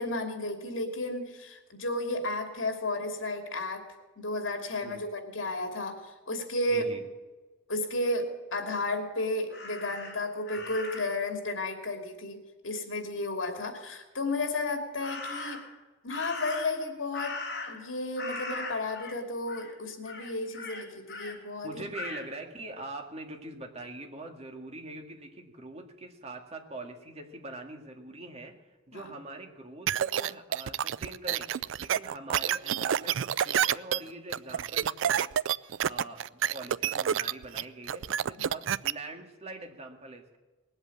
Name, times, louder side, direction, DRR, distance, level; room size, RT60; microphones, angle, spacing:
voice 1, 0.0-3.8 4.2-6.9 7.7-12.4 12.6-15.6 16.0-17.4 17.7-21.8 28.9-29.1 38.4-38.5, left 2 dB, 80° left, 5 dB, 2.8 m, -33 dB
voice 2, 6.7-7.0 10.6-10.7 21.6-35.3 35.7-40.4, right 2 dB, 35° right, 3 dB, 2.0 m, -43 dB
Crow, 9.5-11.3 15.0-15.8 16.1-17.9 18.2-19.2 19.5-19.7 20.1-21.4 21.9-22.3, left 3 dB, 60° left, 2.6 m, -39 dB
sound 1, 29.9-38.9, right 9 dB, 70° right, 0.4 m, -28 dB
20.0 x 8.0 x 8.5 m, 1.2 s
head